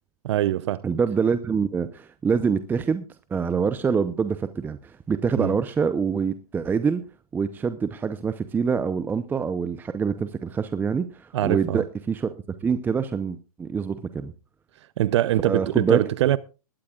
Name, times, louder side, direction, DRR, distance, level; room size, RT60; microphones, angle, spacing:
voice 1, 0.2-0.8 5.4-5.6 11.3-11.8 15.0-16.4, right 13 dB, 50° right, 0.7 m, -23 dB
voice 2, 0.8-3.0 3.3-7.0 7.3-12.3 12.6-14.3 15.4-16.0, right 6 dB, 10° right, 0.7 m, -25 dB
20.5 x 13.5 x 2.4 m
hypercardioid pair, 130°, 19 cm